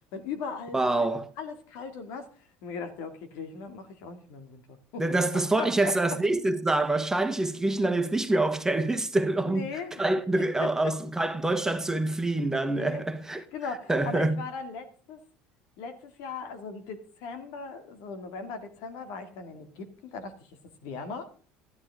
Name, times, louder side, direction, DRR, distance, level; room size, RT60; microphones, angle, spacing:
voice 1, 0.1-1.1 1.4-2.3 2.6-5.0 5.6-5.9 9.4-10.0 10.6-10.9 12.7-13.0 13.5-15.2 15.8-20.5 20.8-21.3, left 5 dB, 70° left, 2.5 m, -38 dB
voice 2, 0.7-1.3 5.0-9.7 10.0-13.4 13.9-14.4, right 2 dB, 10° right, 1.5 m, -26 dB
13.5 x 13.0 x 3.7 m
hypercardioid pair, 80°, 5 cm